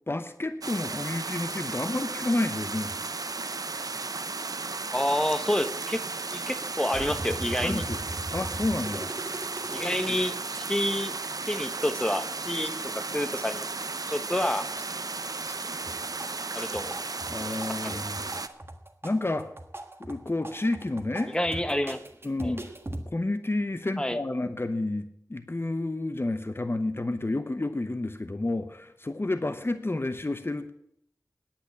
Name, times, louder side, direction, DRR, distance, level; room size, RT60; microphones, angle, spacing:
voice 1, 0.1-3.0 7.6-8.0 8.3-9.1 17.3-18.4 19.0-19.5 20.0-21.3 22.2-22.7 23.1-25.0 25.3-30.7, left 2 dB, 35° left, 9 dB, 0.9 m, -30 dB
sound 1, 0.6-18.5, right 3 dB, 65° right, 0.8 m, -34 dB
voice 2, 4.9-6.0 6.3-7.8 9.7-11.1 11.5-12.8 13.1-13.7 14.1-14.7 16.5-17.0 17.5-17.6 17.8-18.0 21.3-22.0 22.4-22.5 24.0-24.2, left 1 dB, 10° left, 9 dB, 1.1 m, -28 dB
sound 2, 6.9-10.2 10.5-10.6 10.9-11.6 11.9-13.4 13.9-14.4 14.8-15.5 15.8-23.0, right 1 dB, 40° right, 1.5 m, -39 dB
10.0 x 8.9 x 8.6 m, 0.73 s
wide cardioid pair, 55°, 7 cm